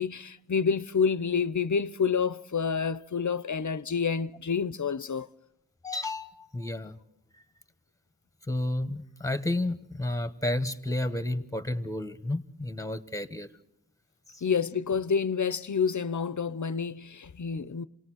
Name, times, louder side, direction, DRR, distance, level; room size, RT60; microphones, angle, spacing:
voice 1, 0.0-5.3 14.4-17.8, left 6 dB, 50° left, 0.7 m, -28 dB
voice 2, 5.8-7.0 7.3-7.4 8.5-13.5 14.3-14.4, left 1 dB, 10° left, 1.3 m, -31 dB
27.5 x 19.0 x 6.3 m
wide cardioid pair, 50°, 38 cm